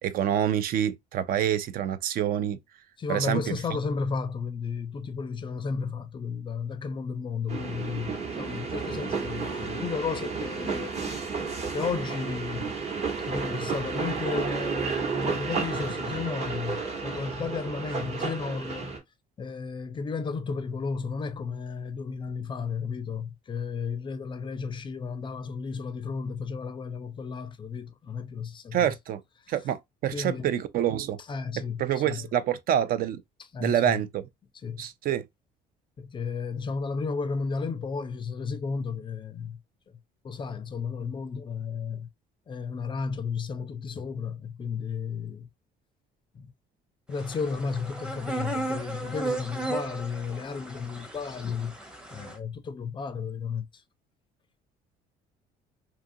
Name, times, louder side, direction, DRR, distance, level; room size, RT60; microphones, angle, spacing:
voice 1, 0.0-2.6 3.1-3.6 28.7-29.2 29.5-31.2 31.8-33.2 33.6-34.2 34.8-35.2, right 10 dB, 60° right, 0.4 m, -27 dB
voice 2, 3.0-11.0 11.7-12.7 13.2-19.0 19.4-28.9 30.1-30.5 31.3-32.2 33.5-34.0 34.6-34.8 36.0-39.6 40.2-42.1 42.5-45.5 46.3-46.5 47.1-53.7, left 5 dB, 30° left, 0.4 m, -33 dB
sound 1, 7.5-19.0, right 5 dB, 40° right, 1.0 m, -32 dB
sound 2, 47.1-52.4, right 2 dB, 5° right, 0.7 m, -35 dB
2.7 x 2.4 x 2.6 m
cardioid pair, 110°, 17 cm